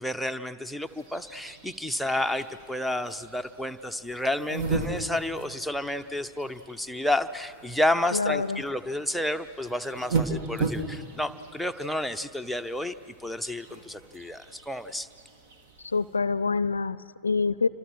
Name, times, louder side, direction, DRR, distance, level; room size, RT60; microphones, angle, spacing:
voice 1, 0.0-15.1, left 1 dB, ahead, 13 dB, 0.8 m, -30 dB
sound 1, 0.8-16.2, right 4 dB, 50° right, 2.4 m, -37 dB
voice 2, 8.1-8.6 15.8-17.7, left 4 dB, 75° left, 18 dB, 0.5 m, -26 dB
28.5 x 25.0 x 6.3 m, 2.3 s
figure-of-eight pair, 90°, 0 cm